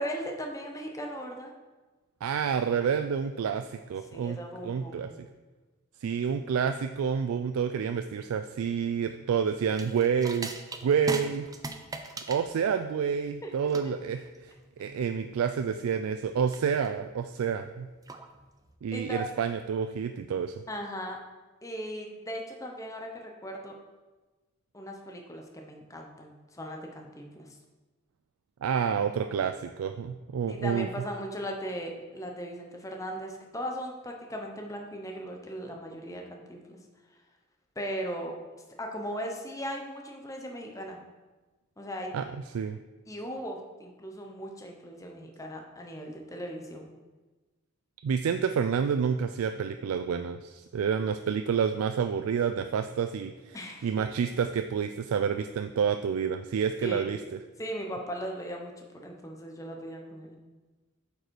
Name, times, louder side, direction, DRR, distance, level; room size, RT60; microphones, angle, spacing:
voice 1, 0.0-1.5 4.1-5.2 13.4-13.5 18.9-19.2 20.7-21.2 21.6-23.7 24.7-27.5 30.5-36.8 37.8-38.3 38.8-41.0 41.8-42.1 43.1-46.9 53.5-53.9 56.8-57.2 57.6-60.4, equal, 15° left, 2 dB, 0.8 m, -38 dB
voice 2, 2.2-4.4 4.6-5.3 6.0-10.5 10.8-11.5 12.3-17.9 18.8-20.5 28.6-30.9 42.1-42.8 48.0-57.2, right 7 dB, 85° right, 8 dB, 0.3 m, -29 dB
sound 1, 9.7-18.8, right 2 dB, 15° right, 0.4 m, -41 dB
7.9 x 5.3 x 4.6 m, 1.2 s
head